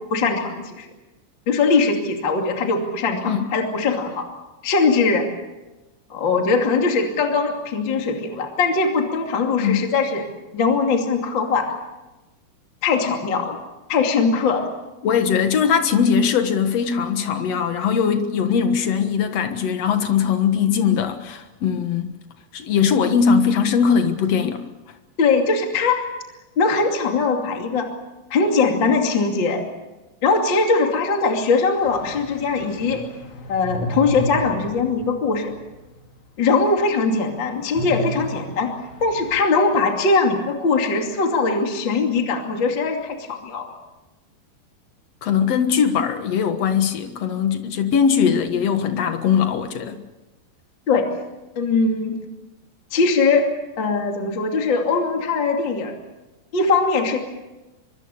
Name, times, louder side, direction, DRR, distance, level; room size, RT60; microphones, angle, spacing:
voice 1, 0.1-0.9 1.5-4.3 4.6-5.3 6.1-10.3 10.5-11.7 12.8-13.6 13.9-14.7 25.2-26.0 26.6-27.9 28.3-29.6 30.2-33.0 33.5-35.5 36.4-38.7 39.0-43.7 50.9-51.1 51.6-52.2 52.9-53.5 53.8-56.0 56.5-57.2, left 4 dB, 30° left, 2.6 m, -21 dB
voice 2, 15.0-22.1 22.5-24.6 45.2-50.0, left 7 dB, 60° left, 1.7 m, -20 dB
sound 1, 31.8-36.2 36.5-36.7 37.7-39.4, equal, 80° left, 5.2 m, -33 dB
24.5 x 24.5 x 6.8 m
omnidirectional pair, 5.0 m